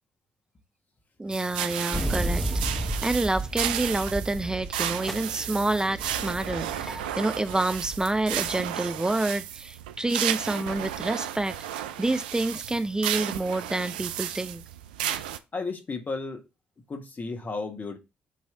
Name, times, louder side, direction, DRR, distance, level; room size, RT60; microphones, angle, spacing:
voice 1, 1.2-2.4 2.7-14.6, right 2 dB, 15° right, 0.5 m, -28 dB
sound 1, 1.3-15.4, right 11 dB, 85° right, 0.3 m, -33 dB
sound 2, 1.9-4.8 5.1-8.6, right 1 dB, ahead, 1.0 m, -33 dB
voice 2, 15.5-16.4 16.9-18.0, left 3 dB, 40° left, 1.6 m, -33 dB
8.1 x 3.1 x 3.8 m
hypercardioid pair, 45°, 5 cm